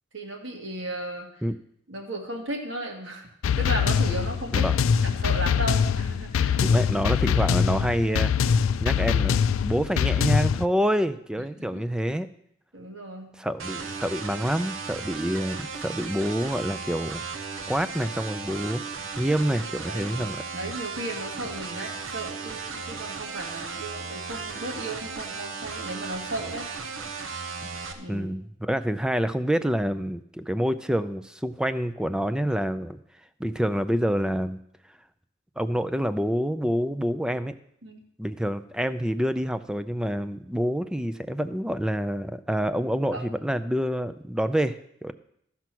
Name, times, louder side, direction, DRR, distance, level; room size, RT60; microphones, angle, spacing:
voice 1, 0.1-1.4 1.9-3.3 3.6-4.7 5.0-6.6 11.6-11.8 12.7-13.3 19.9-20.1 20.5-26.7 27.9-28.3 37.8-38.0 43.1-43.4, right 1 dB, 65° right, 2 dB, 2.1 m, -35 dB
sound 1, 3.4-10.6, left 7 dB, 85° left, 0.4 m, -23 dB
voice 2, 6.6-12.3 13.4-17.2 17.7-20.4 28.1-33.0 33.4-34.6 35.6-37.6 38.2-45.1, equal, 5° right, 12 dB, 0.4 m, -27 dB
sound 2, 13.6-27.9, right 5 dB, 80° right, 1.1 m, -36 dB
14.0 x 5.8 x 6.1 m, 0.73 s
head